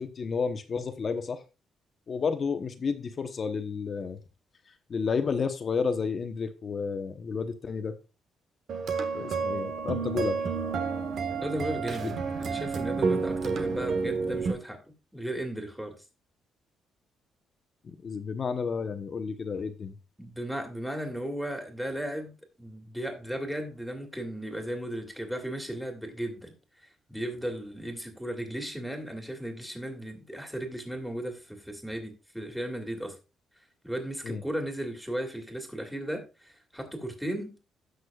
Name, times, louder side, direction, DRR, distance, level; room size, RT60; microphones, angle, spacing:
voice 1, 0.0-1.4 2.1-4.2 4.9-7.9 9.1-10.4 12.0-12.2 17.8-20.0 34.2-34.4, left 5 dB, 45° left, 1.0 m, -31 dB
sound 1, 8.7-14.5, right 5 dB, 60° right, 1.3 m, -30 dB
voice 2, 11.4-14.8 15.1-16.0 20.2-22.3 22.6-26.5 27.1-33.1 33.8-37.5, right 1 dB, 5° right, 2.5 m, -35 dB
16.0 x 6.4 x 2.4 m
cardioid pair, 90°, 0 cm